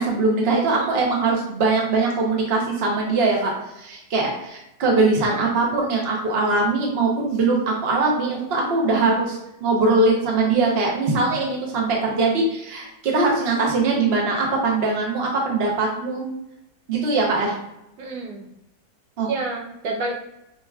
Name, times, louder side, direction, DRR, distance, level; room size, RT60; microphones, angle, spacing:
voice 1, 0.0-16.3 16.9-17.5 19.2-19.3, right 3 dB, 45° right, -1 dB, 1.0 m, -21 dB
voice 2, 0.6-1.1 5.3-5.5 18.0-18.5 19.3-20.1, right 3 dB, 80° right, 0 dB, 1.4 m, -30 dB
5.1 x 3.0 x 2.3 m, 0.88 s
omnidirectional pair, 1.9 m